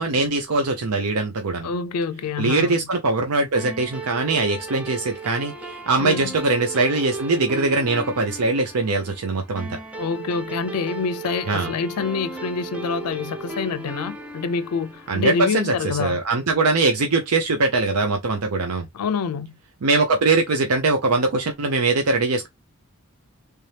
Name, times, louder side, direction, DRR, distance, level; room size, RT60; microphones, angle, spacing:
voice 1, 0.0-1.7 2.4-9.8 11.5-11.7 15.1-18.9 19.8-22.5, right 3 dB, 75° right, 0.6 m, -22 dB
voice 2, 1.6-2.9 6.0-6.3 10.0-16.2 18.9-19.6, left 5 dB, 85° left, 0.5 m, -26 dB
sound 1, 3.6-16.3, right 3 dB, 5° right, 0.6 m, -36 dB
3.4 x 2.8 x 3.3 m
head